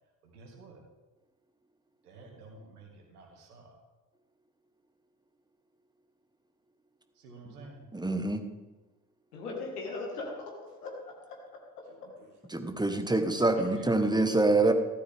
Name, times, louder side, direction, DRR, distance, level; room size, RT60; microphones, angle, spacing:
voice 1, 0.2-0.8 2.0-3.7 7.2-7.9 11.9-12.3 12.5-12.6 13.5-13.9, right 3 dB, 85° right, 2 dB, 2.1 m, -51 dB
voice 2, 7.9-8.4 12.5-14.7, right 2 dB, 10° right, 7 dB, 1.4 m, -25 dB
voice 3, 9.3-12.1 13.5-13.7, left 3 dB, 85° left, 1 dB, 1.9 m, -40 dB
14.0 x 11.5 x 3.6 m, 1.2 s
figure-of-eight pair, 50°, 45 cm